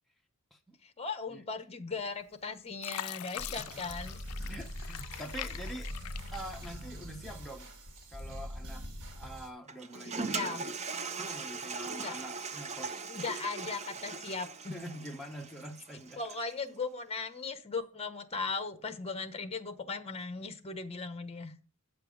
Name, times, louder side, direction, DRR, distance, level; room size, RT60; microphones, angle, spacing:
voice 1, 0.8-4.2 10.0-10.7 11.8-12.2 13.1-14.8 16.2-21.5, left 4 dB, 30° left, 1.0 m, -38 dB
Fill (with liquid), 2.1-2.4 2.8-7.2 7.6-8.5 9.0-9.2, left 13 dB, 65° left, 0.3 m, -43 dB
sound 1, 3.4-9.5, equal, 80° right, 2.1 m, -42 dB
voice 2, 4.5-5.9 6.3-7.7 8.1-8.9 9.1-10.8 11.2-13.0 14.7-16.4, equal, ahead, 0.9 m, -45 dB
Toilet flush, 9.7-16.6, right 4 dB, 30° right, 0.7 m, -40 dB
8.6 x 6.8 x 5.2 m
head